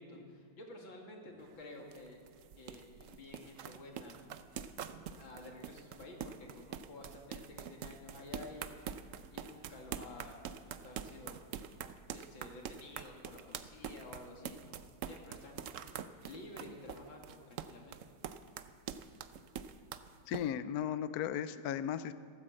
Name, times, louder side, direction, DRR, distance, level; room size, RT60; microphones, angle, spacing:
voice 1, 0.0-2.3 2.6-4.2 5.1-8.7 9.3-11.4 12.1-15.7 16.2-18.1, left 2 dB, 85° left, 1 dB, 3.0 m, -51 dB
sound 1, 1.4-20.4, right 8 dB, 70° right, 0.7 m, -45 dB
voice 2, 20.3-22.1, left 9 dB, 70° left, 13 dB, 1.0 m, -36 dB
14.0 x 13.5 x 7.7 m, 2.1 s
omnidirectional pair, 2.1 m